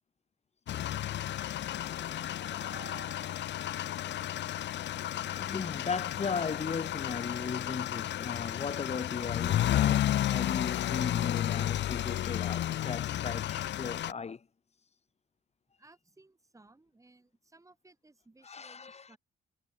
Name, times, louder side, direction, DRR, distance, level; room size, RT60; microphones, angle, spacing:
sound 1, 0.7-14.1, left 12 dB, 65° left, 0.7 m, -32 dB
sound 2, 0.7-7.8, right 10 dB, 65° right, 5.0 m, -57 dB
voice 1, 5.2-14.4 18.4-19.1, left 5 dB, 35° left, 1.4 m, -37 dB
voice 2, 15.8-19.2, right 2 dB, 15° right, 3.5 m, -60 dB
cardioid pair, 90°, 20 cm